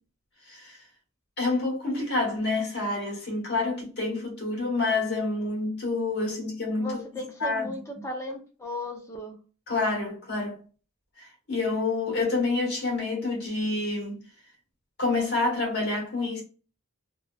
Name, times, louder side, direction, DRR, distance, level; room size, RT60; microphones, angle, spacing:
voice 1, 0.4-0.9 1.4-6.9 7.4-7.7 9.7-10.6 11.2-14.2 15.0-16.4, left 3 dB, 50° left, 1.3 m, -28 dB
voice 2, 6.8-9.4, left 1 dB, 15° left, 0.5 m, -36 dB
2.9 x 2.2 x 2.3 m
head